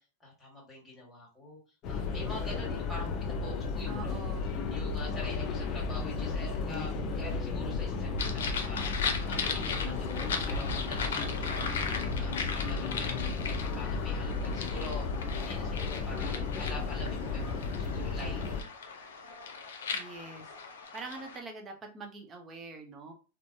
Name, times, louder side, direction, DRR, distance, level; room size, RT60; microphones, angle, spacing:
voice 1, 0.0-1.6 1.9-4.1 4.7-13.2 13.4-18.7, left 1 dB, 5° left, -6 dB, 1.6 m, -46 dB
sound 1, 1.8-18.6, left 4 dB, 40° left, 0.5 m, -33 dB
voice 2, 3.9-4.5 19.9-20.5 20.9-23.1, right 3 dB, 25° right, 2 dB, 0.7 m, -44 dB
sound 2, 8.2-21.4, left 5 dB, 80° left, 0.6 m, -38 dB
3.1 x 2.1 x 2.6 m, 0.34 s
hypercardioid pair, 120°, 0 cm